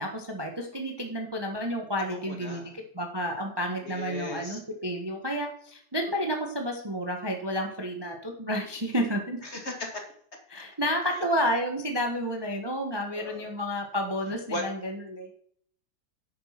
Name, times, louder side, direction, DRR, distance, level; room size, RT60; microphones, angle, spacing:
voice 1, 0.0-2.6 2.9-9.4 10.5-15.3, equal, 15° right, 3 dB, 1.3 m, -30 dB
voice 2, 2.1-2.7 3.8-4.6 9.4-10.0 13.2-13.5 14.5-14.6, left 2 dB, 35° left, 2 dB, 2.2 m, -36 dB
10.5 x 8.4 x 6.0 m, 0.62 s
omnidirectional pair, 2.3 m